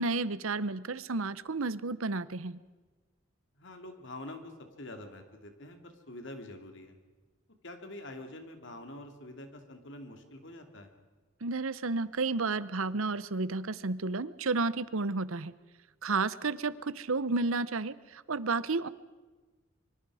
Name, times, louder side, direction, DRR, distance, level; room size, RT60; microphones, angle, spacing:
voice 1, 0.0-2.6 11.4-15.5 16.0-18.9, right 3 dB, 80° right, 17 dB, 0.9 m, -31 dB
voice 2, 3.6-4.5 4.8-7.0 7.6-10.9, left 1 dB, 60° left, 6 dB, 2.8 m, -46 dB
25.0 x 24.5 x 4.9 m, 1.3 s
head